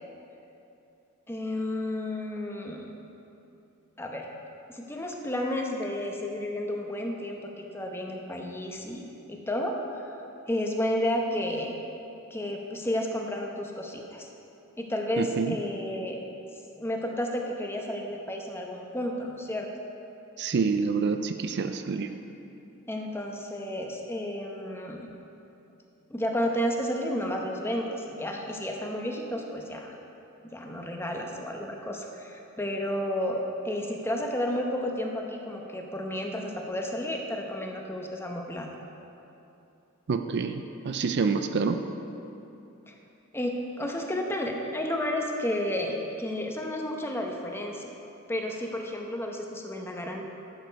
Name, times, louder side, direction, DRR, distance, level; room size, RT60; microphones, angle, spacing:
voice 1, 1.3-2.9 4.0-4.3 4.7-10.2 10.5-11.7 12.3-14.3 14.8-16.2 16.8-19.7 22.9-25.1 26.1-30.0 30.4-38.7 42.9-43.0 43.3-47.9 48.3-50.3, left 1 dB, 10° left, 1 dB, 0.9 m, -32 dB
voice 2, 15.2-15.6 20.4-22.1 40.1-41.8, right 5 dB, 50° right, 7 dB, 0.4 m, -27 dB
12.0 x 7.4 x 4.6 m, 2.8 s
head